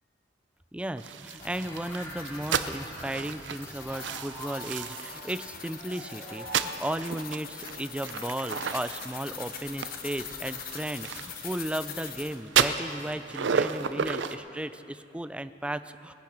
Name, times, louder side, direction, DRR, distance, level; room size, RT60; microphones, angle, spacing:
voice 1, 0.7-16.1, right 1 dB, 5° right, 12 dB, 0.4 m, -35 dB
sound 1, 1.0-12.4, left 7 dB, 55° left, 1.1 m, -43 dB
sound 2, 1.0-5.4 5.8-12.1 12.5-14.4, right 7 dB, 80° right, 0.6 m, -32 dB
sound 3, 1.4-6.7, right 1 dB, 20° left, 2.6 m, -44 dB
19.5 x 10.5 x 5.1 m, 2.6 s
head